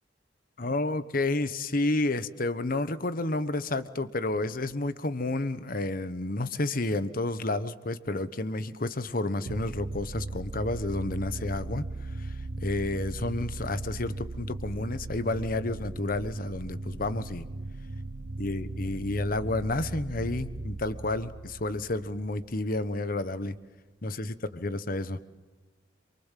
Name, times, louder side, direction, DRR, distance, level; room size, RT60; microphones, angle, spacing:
voice 1, 0.6-11.9 12.2-17.5 18.4-23.6 24.0-25.2, left 2 dB, 50° left, 12 dB, 1.2 m, -30 dB
sound 1, 9.5-22.9, right 2 dB, 70° right, 0.9 m, -38 dB
27.5 x 24.0 x 7.5 m, 1.3 s
head